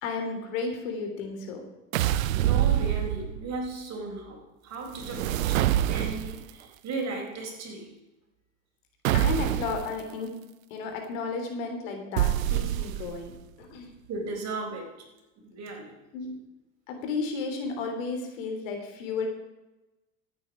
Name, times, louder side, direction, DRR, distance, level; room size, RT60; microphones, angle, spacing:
voice 1, 0.0-1.6 9.1-10.3 10.7-13.3 13.6-13.9 16.1-16.4 16.9-19.3, left 4 dB, 75° left, 4 dB, 3.3 m, -33 dB
sound 1, 1.9-3.5 5.0-6.5 9.0-9.9 12.2-13.3, right 13 dB, 85° right, 0.7 m, -26 dB
voice 2, 2.4-7.9 12.7-12.8 14.1-15.0 15.4-16.0, right 3 dB, 40° right, 1 dB, 4.4 m, -36 dB
14.5 x 8.8 x 5.1 m, 1.0 s
supercardioid pair, 105°, 40 cm